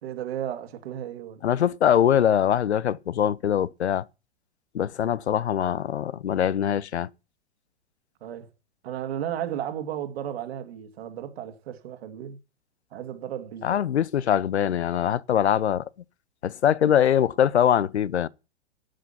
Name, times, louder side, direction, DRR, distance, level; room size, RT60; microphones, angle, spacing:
voice 1, 0.0-1.4 8.2-8.5 8.8-12.4 12.9-13.8, right 10 dB, 65° right, 2.3 m, -34 dB
voice 2, 1.4-4.0 4.7-7.1 13.6-15.8 16.4-18.3, left 9 dB, 80° left, 0.7 m, -23 dB
11.5 x 8.1 x 5.6 m
hypercardioid pair, 105°, 33 cm